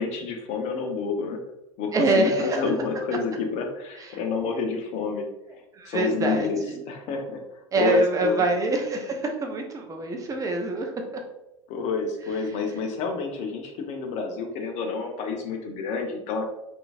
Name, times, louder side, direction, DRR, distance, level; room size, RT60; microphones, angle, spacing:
voice 1, 0.0-1.4 1.8-5.3 5.9-6.6 6.9-7.4 7.7-8.5 11.7-16.4, left 5 dB, 45° left, 3 dB, 0.6 m, -29 dB
voice 2, 1.9-2.7 4.0-4.2 5.7-6.5 7.7-10.9, right 2 dB, 20° right, 3 dB, 0.5 m, -25 dB
3.0 x 2.5 x 2.4 m, 0.91 s
figure-of-eight pair, 80°, 16 cm